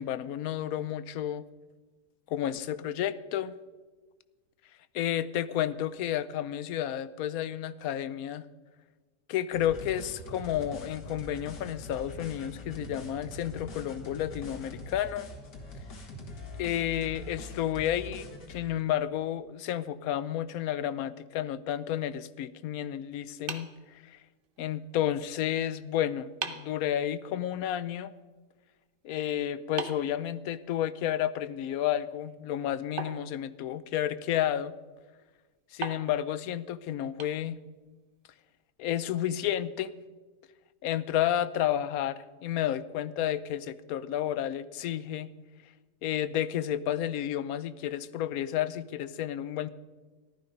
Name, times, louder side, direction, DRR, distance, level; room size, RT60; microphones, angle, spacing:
voice 1, 0.0-1.4 2.3-3.6 4.9-8.4 9.3-15.3 16.6-24.2 24.6-28.1 29.0-34.7 35.7-37.6 38.8-39.9 40.8-45.3 46.0-49.7, left 11 dB, 70° left, 14 dB, 1.0 m, -31 dB
sound 1, 9.5-18.7, left 2 dB, 85° left, 2.4 m, -43 dB
sound 2, 23.5-24.6 25.8-25.9 26.4-26.8 29.8-31.0 33.0-34.1 35.8-37.9, right 5 dB, 40° right, 0.8 m, -41 dB
14.5 x 12.5 x 5.2 m, 1.3 s
omnidirectional pair, 1.8 m